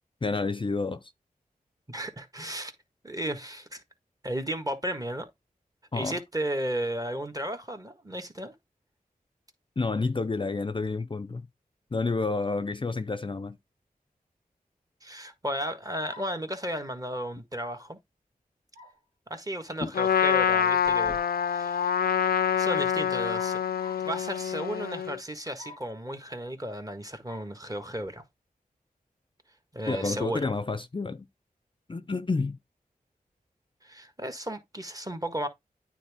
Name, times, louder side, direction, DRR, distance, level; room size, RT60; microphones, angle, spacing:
voice 1, 0.2-1.1 5.9-6.2 9.8-11.5 11.9-13.6 19.8-19.9 29.9-31.3 31.9-32.6, left 3 dB, 35° left, 0.5 m, -29 dB
voice 2, 1.9-2.7 3.0-3.8 4.2-5.3 5.9-8.5 15.0-18.0 19.3-21.2 21.4-21.9 22.6-23.6 24.0-28.2 29.7-30.5 33.8-35.5, right 1 dB, 25° right, 1.6 m, -34 dB
sound 1, 16.1-16.5 18.7-19.0 20.8-21.4 23.3-24.1 25.6-26.0 27.2-27.5 28.0-28.1 29.8-30.2, left 1 dB, 70° right, 3.0 m, -48 dB
Trumpet, 19.9-25.2, left 8 dB, 85° left, 0.5 m, -26 dB
9.2 x 3.7 x 3.5 m
cardioid pair, 40°, 15 cm